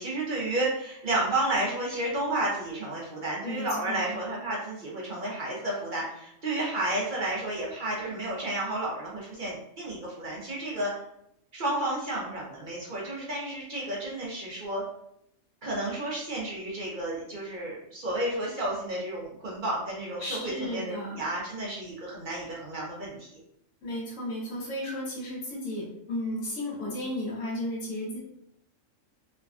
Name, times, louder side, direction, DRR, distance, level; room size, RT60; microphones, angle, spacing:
voice 1, 0.0-10.9 11.5-14.8 15.6-23.4, right 1 dB, 50° right, -4 dB, 0.6 m, -31 dB
voice 2, 3.4-4.1 20.2-21.2 23.8-28.2, left 1 dB, 80° left, -7 dB, 1.3 m, -34 dB
3.2 x 2.1 x 2.4 m, 0.76 s
omnidirectional pair, 1.3 m